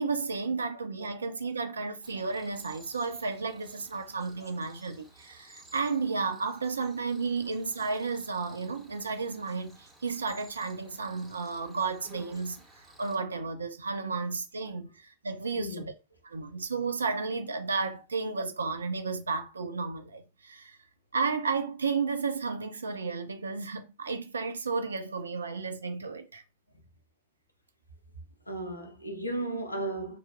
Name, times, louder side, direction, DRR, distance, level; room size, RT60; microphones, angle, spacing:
voice 1, 0.0-12.6 13.0-15.8 16.3-20.8 21.1-26.4, right 4 dB, 75° right, 0.4 m, -32 dB
Cricket, 2.0-13.2, right 1 dB, ahead, 0.8 m, -56 dB
voice 2, 15.6-15.9 28.5-30.2, right 1 dB, 85° left, 0.5 m, -35 dB
3.0 x 2.0 x 2.5 m
figure-of-eight pair, 90°, 0 cm